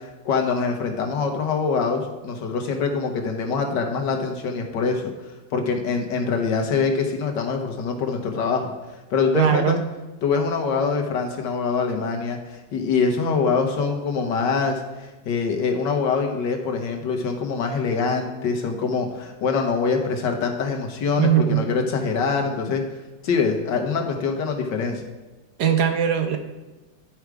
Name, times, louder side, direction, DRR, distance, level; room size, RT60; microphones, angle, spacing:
voice 1, 0.0-5.0 5.5-8.7 9.1-9.8 10.2-22.8 23.2-25.0, left 5 dB, 70° left, 3 dB, 1.7 m, -24 dB
voice 2, 9.3-9.8 21.2-21.6 25.6-26.4, right 9 dB, 65° right, 7 dB, 1.2 m, -19 dB
10.5 x 4.9 x 4.7 m, 1.2 s
omnidirectional pair, 2.0 m